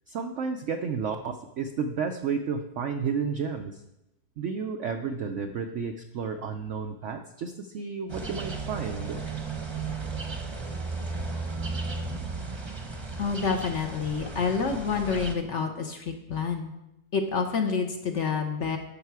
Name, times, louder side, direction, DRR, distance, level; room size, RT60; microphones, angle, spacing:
voice 1, 0.1-3.8 4.4-9.2, right 5 dB, 70° right, 6 dB, 0.7 m, -32 dB
sound 1, 8.1-15.3, right 4 dB, 20° right, 0.8 m, -35 dB
voice 2, 13.2-16.7 17.1-18.8, left 5 dB, 50° left, 5 dB, 1.0 m, -28 dB
11.0 x 6.9 x 4.7 m, 0.90 s
omnidirectional pair, 1.9 m